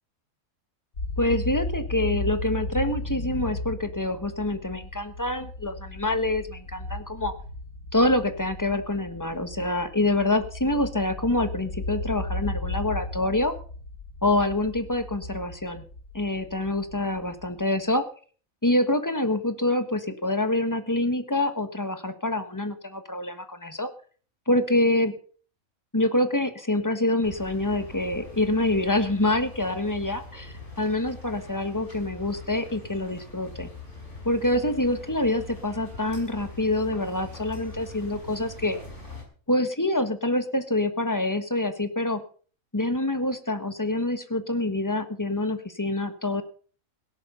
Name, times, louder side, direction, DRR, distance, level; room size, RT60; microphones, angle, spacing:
sound 1, 0.9-17.8, left 2 dB, 85° left, 7.3 m, -35 dB
voice 1, 1.2-7.3 7.9-13.5 14.2-15.8 16.1-18.0 18.6-23.9 24.5-25.1 25.9-33.7 34.2-38.8 39.5-42.2 42.7-46.4, left 1 dB, 15° left, 9 dB, 1.3 m, -26 dB
sound 2, 27.2-39.2, left 3 dB, 55° left, 5.9 m, -42 dB
17.5 x 11.0 x 5.6 m, 0.43 s
omnidirectional pair, 1.5 m